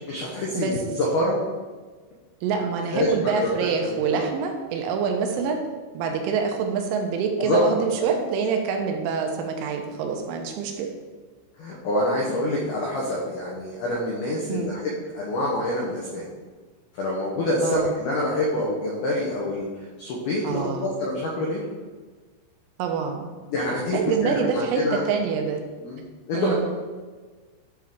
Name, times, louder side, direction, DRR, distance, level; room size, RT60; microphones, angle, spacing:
voice 1, 0.0-1.4 2.9-4.2 7.4-7.6 7.9-8.1 11.6-16.3 16.9-19.7 20.0-21.6 23.5-25.0 25.8-26.0 26.3-26.7, left 1 dB, 85° left, -3 dB, 2.1 m, -26 dB
voice 2, 2.4-5.6 5.9-10.9 14.5-14.7 17.6-17.9 20.4-20.9 22.8-23.4 23.9-25.6 26.3-26.7, right 6 dB, 90° right, 3 dB, 3.1 m, -26 dB
9.1 x 3.7 x 3.6 m, 1.4 s
omnidirectional pair, 5.6 m